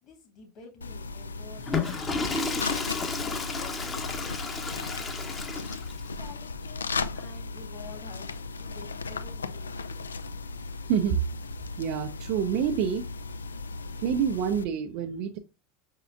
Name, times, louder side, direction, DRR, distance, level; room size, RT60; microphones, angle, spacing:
voice 1, 0.0-5.7 6.1-10.2, left 3 dB, 45° left, 1.6 m, -50 dB
sound 1, 0.8-14.6, left 4 dB, 75° left, 0.3 m, -36 dB
Water / Toilet flush, 1.6-6.1, left 4 dB, 20° left, 0.8 m, -32 dB
voice 2, 10.9-11.2 11.8-13.1 14.0-15.4, right 8 dB, 50° right, 0.5 m, -27 dB
5.6 x 3.7 x 2.4 m
figure-of-eight pair, 80°, 0 cm